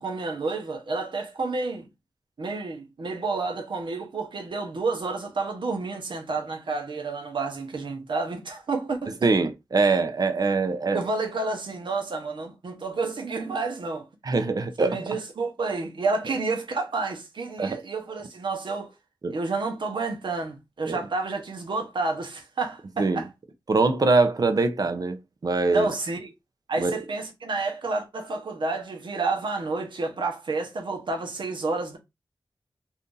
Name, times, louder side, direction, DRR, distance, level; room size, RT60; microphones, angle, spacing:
voice 1, 0.0-1.9 2.4-9.3 10.9-14.0 14.8-18.9 19.3-23.3 25.7-26.3 26.7-32.0, right 3 dB, 70° right, 0.9 m, -30 dB
voice 2, 9.2-11.0 14.2-15.2 17.6-17.8 19.2-19.4 20.9-21.0 23.0-23.2 23.7-25.2 25.4-25.9 26.8-27.0, right 3 dB, 50° right, 0.5 m, -23 dB
2.7 x 2.5 x 3.7 m
wide cardioid pair, 85°, 9 cm